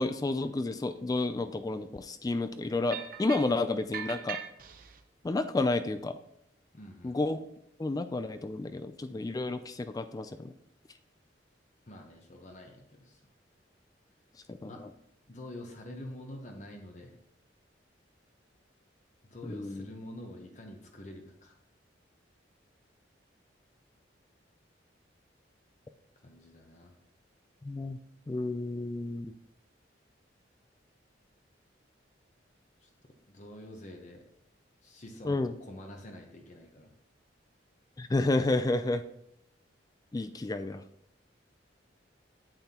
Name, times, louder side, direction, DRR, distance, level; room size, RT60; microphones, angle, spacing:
voice 1, 0.0-4.4 5.2-6.1 7.0-7.4 7.8-10.5 14.5-14.6 19.4-19.9 27.6-28.0 28.3-29.3 35.2-35.5 38.0-39.0 40.1-40.8, left 2 dB, 20° left, 11 dB, 0.3 m, -31 dB
sound 1, 2.9-3.6 3.9-5.0, right 8 dB, 50° right, 0.7 m, -40 dB
voice 2, 6.7-7.2 11.8-13.2 14.6-14.8 15.3-17.1 19.3-21.6 26.2-26.9 32.8-32.9 33.3-34.2 34.8-36.9, left 1 dB, 40° left, 2 dB, 0.9 m, -47 dB
8.9 x 7.8 x 2.9 m, 0.78 s
head